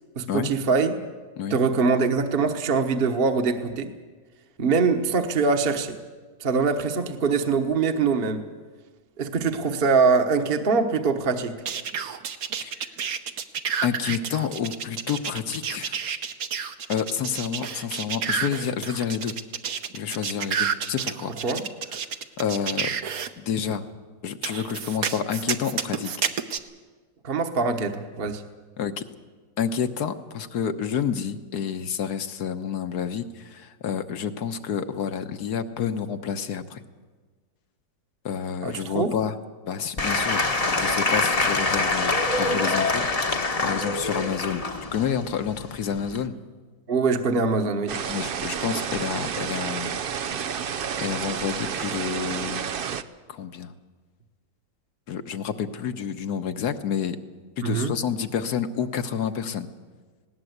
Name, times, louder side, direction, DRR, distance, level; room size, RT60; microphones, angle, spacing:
voice 1, 0.1-1.0 1.5-3.9 4.6-6.0 6.4-8.4 9.2-11.6 21.4-21.6 27.2-28.4 38.6-39.2 46.9-48.0 57.6-57.9, right 4 dB, 35° right, 5 dB, 1.3 m, -23 dB
sound 1, 11.7-23.3 24.4-26.6, right 7 dB, 60° right, 1.4 m, -30 dB
voice 2, 12.6-12.9 13.8-15.9 16.9-19.3 19.9-21.3 22.4-22.9 23.4-23.8 24.2-26.1 28.8-29.0 29.6-36.8 38.2-39.3 39.7-40.5 40.7-46.4 48.1-50.0 50.4-50.6 51.0-52.6 53.3-53.7 55.1-57.2 57.6-59.7, left 7 dB, 65° left, 9 dB, 1.5 m, -29 dB
Applause / Crowd, 40.0-46.3, left 3 dB, 25° left, 1.0 m, -25 dB
sound 2, 47.9-53.0, right 7 dB, 80° right, 0.4 m, -30 dB
19.5 x 18.0 x 8.0 m, 1.4 s
omnidirectional pair, 1.9 m